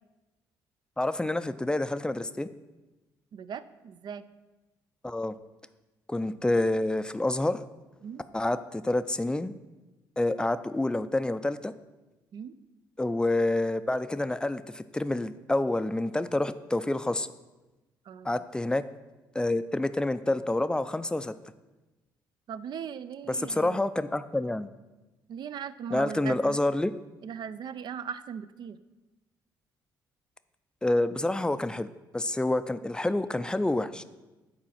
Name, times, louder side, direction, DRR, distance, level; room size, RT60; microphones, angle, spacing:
voice 1, 1.0-2.5 5.0-5.3 6.1-7.6 8.3-9.5 10.2-11.7 13.0-17.3 18.2-18.8 19.3-21.3 23.3-24.7 25.9-26.9 30.8-34.0, left 2 dB, 10° left, 12 dB, 0.4 m, -28 dB
voice 2, 3.3-4.2 8.0-8.2 12.3-12.5 18.1-18.4 22.5-23.8 25.3-26.6 27.2-28.8, right 7 dB, 55° right, 13 dB, 0.5 m, -38 dB
8.8 x 4.2 x 5.7 m, 1.1 s
supercardioid pair, 70°, 9 cm